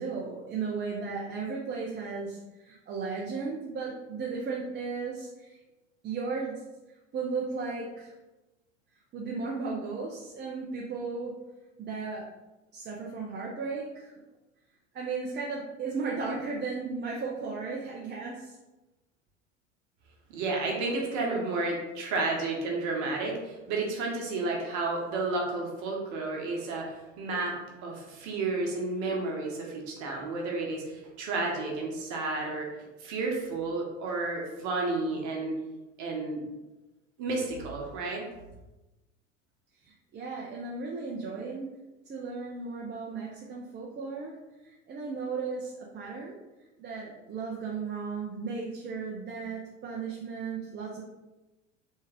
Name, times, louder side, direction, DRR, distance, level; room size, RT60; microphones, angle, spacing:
voice 1, 0.0-5.6 6.0-6.6 7.1-8.1 9.1-11.3 11.8-12.3 12.7-14.1 14.9-18.6 39.8-41.7 42.1-44.4 44.6-46.4 46.8-51.0, right 4 dB, 30° right, -3 dB, 0.7 m, -35 dB
voice 2, 20.3-32.7 33.0-35.5 36.0-36.5 37.2-38.3, right 3 dB, 50° right, -1 dB, 1.1 m, -31 dB
3.4 x 3.2 x 3.4 m, 1.1 s
hypercardioid pair, 80°, 37 cm